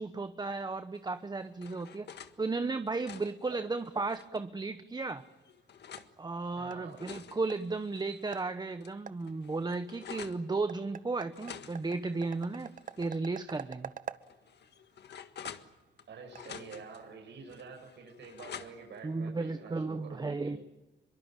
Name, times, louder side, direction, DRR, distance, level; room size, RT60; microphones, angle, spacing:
voice 1, 0.0-5.2 6.2-13.9 19.0-20.6, right 3 dB, 20° right, 10 dB, 1.0 m, -34 dB
sound 1, 1.1-2.4 2.8-4.4 5.0-6.1 6.7-8.4 8.8-8.9 9.2-10.4 11.3-13.2 13.5-13.6 14.2-16.0 16.3-17.0 17.5-19.0, left 8 dB, 65° left, 1.7 m, -49 dB
sound 2, 5.3-17.1, right 7 dB, 45° right, 1.0 m, -50 dB
voice 2, 6.6-7.0 16.1-20.6, right 5 dB, 70° right, 1 dB, 6.6 m, -48 dB
24.5 x 23.5 x 9.1 m, 1.1 s
cardioid pair, 105°, 19 cm